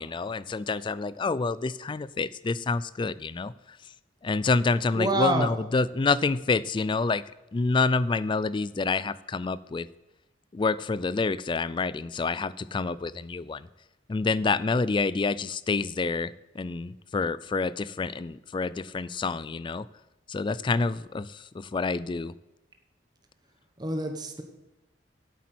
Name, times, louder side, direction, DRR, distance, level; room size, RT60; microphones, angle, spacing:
voice 1, 0.0-3.5 4.2-7.2 7.5-9.9 10.5-13.7 14.1-19.9 20.3-22.3, left 4 dB, 25° left, 18 dB, 0.3 m, -28 dB
voice 2, 4.9-5.5 12.3-12.5 23.8-24.4, right 2 dB, 20° right, 5 dB, 1.1 m, -27 dB
8.5 x 8.3 x 7.8 m, 1.0 s
head